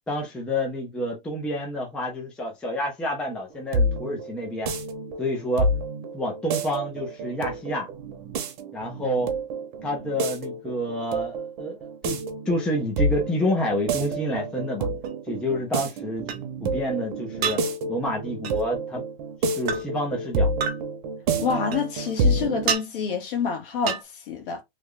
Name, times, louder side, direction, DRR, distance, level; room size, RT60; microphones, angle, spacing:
voice 1, 0.1-4.7 5.2-5.7 6.1-7.9 8.7-9.4 9.8-12.2 12.5-14.9 15.3-16.3 16.6-17.6 17.9-19.0 19.5-20.5, left 1 dB, 5° left, 0.4 m, -28 dB
sound 1, 3.3-22.7, right 2 dB, 50° right, 0.9 m, -29 dB
sound 2, 15.0-15.1 16.3-16.4 17.4-17.6 18.4-18.6 19.7-19.8 20.6-20.8 21.7-22.2 22.7-22.8 23.9-24.0, right 7 dB, 80° right, 0.9 m, -27 dB
voice 2, 21.4-24.6, left 6 dB, 60° left, 1.2 m, -28 dB
3.2 x 2.1 x 3.6 m
supercardioid pair, 155°, 30 cm